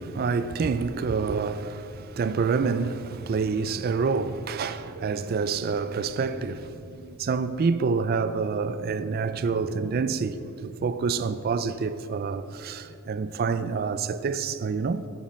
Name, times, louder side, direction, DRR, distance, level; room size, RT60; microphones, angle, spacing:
voice 1, 0.0-15.1, right 5 dB, 45° right, 0.3 m, -27 dB
10.0 x 8.7 x 4.2 m
head